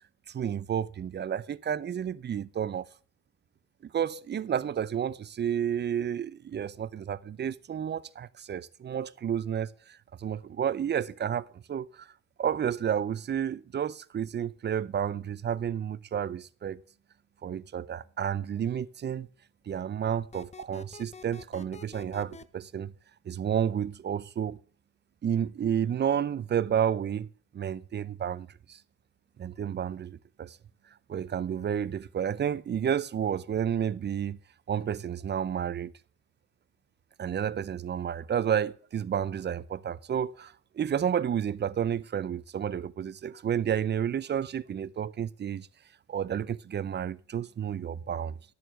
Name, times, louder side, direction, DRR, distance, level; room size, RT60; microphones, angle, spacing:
voice 1, 0.3-2.9 3.9-12.1 12.4-16.8 17.4-19.3 19.7-22.9 23.3-24.6 25.2-27.3 27.5-28.8 29.4-30.6 31.1-34.4 34.7-35.9 37.2-45.7 46.1-48.3, right 8 dB, 35° right, 0.5 m, -31 dB
sound 1, 20.3-22.4, left 5 dB, 20° left, 0.6 m, -47 dB
11.0 x 6.7 x 6.1 m
cardioid pair, 90°, 30 cm